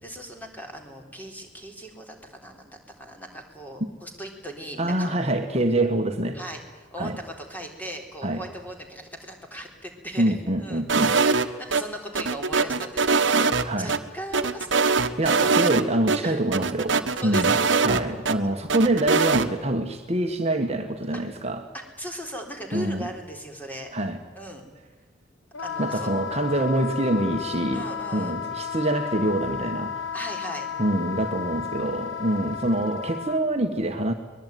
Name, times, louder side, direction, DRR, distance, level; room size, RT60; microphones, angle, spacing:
voice 1, 0.0-5.1 6.3-10.3 10.6-13.5 13.8-14.9 15.2-15.7 16.2-16.4 17.2-17.6 21.7-23.9 24.4-24.6 25.6-26.1 27.7-28.4 30.1-30.7, equal, 10° left, 3 dB, 3.9 m, -38 dB
voice 2, 4.8-6.4 7.0-7.2 8.2-8.4 10.2-11.2 13.6-13.9 15.2-17.0 17.2-21.6 22.7-23.1 23.9-24.2 25.8-27.8 28.1-30.1 30.8-34.1, right 1 dB, 35° right, 4 dB, 1.6 m, -25 dB
sound 1, 10.9-11.8 12.2-14.0 14.3-15.8 16.1-16.2 16.5-18.4 18.7-19.5, right 4 dB, 70° right, 1.4 m, -22 dB
Wind instrument woodwind instrument, 25.5-33.4, left 7 dB, 85° left, 1.4 m, -33 dB
23.0 x 21.0 x 9.4 m, 1.2 s
head